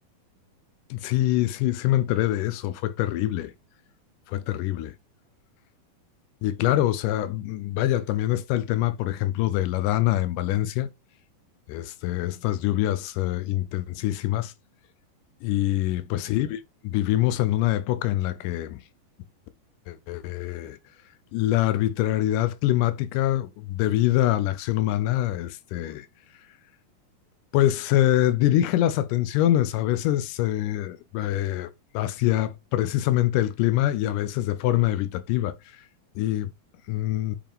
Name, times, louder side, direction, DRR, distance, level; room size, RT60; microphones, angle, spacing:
voice 1, 0.9-3.5 4.3-4.9 6.4-10.9 11.7-14.5 15.4-18.8 19.9-20.8 21.3-26.1 27.5-35.8 36.2-36.5 36.9-37.4, left 14 dB, 80° left, 1.9 m, -24 dB
7.5 x 4.8 x 3.5 m
omnidirectional pair, 4.3 m